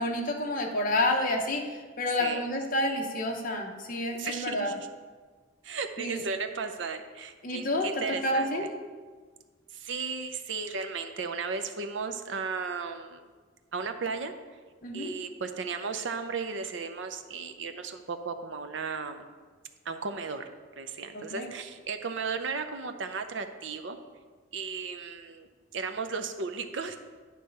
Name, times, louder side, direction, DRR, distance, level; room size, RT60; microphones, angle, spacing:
voice 1, 0.0-4.7 6.0-6.2 7.4-7.9 8.2-8.7 14.8-15.1 21.1-21.5, left 1 dB, 45° left, 1 dB, 0.9 m, -29 dB
voice 2, 4.2-4.9 5.6-8.7 9.7-13.2 13.7-14.3 14.9-19.2 19.8-20.5 20.8-24.0 24.5-25.5 25.7-27.0, right 5 dB, 70° right, 7 dB, 0.6 m, -35 dB
9.3 x 3.3 x 6.5 m, 1.5 s
head